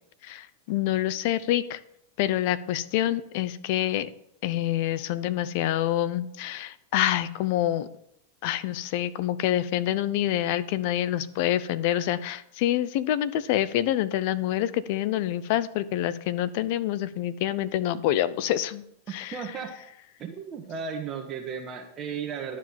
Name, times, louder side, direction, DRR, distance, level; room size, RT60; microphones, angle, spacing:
voice 1, 0.2-1.8 2.2-4.1 4.4-7.9 8.4-19.6, left 12 dB, 60° left, 16 dB, 0.7 m, -27 dB
voice 2, 19.1-19.7 20.2-22.6, right 6 dB, 30° right, 2 dB, 1.3 m, -35 dB
11.5 x 5.0 x 7.6 m, 0.76 s
hypercardioid pair, 120°, 0 cm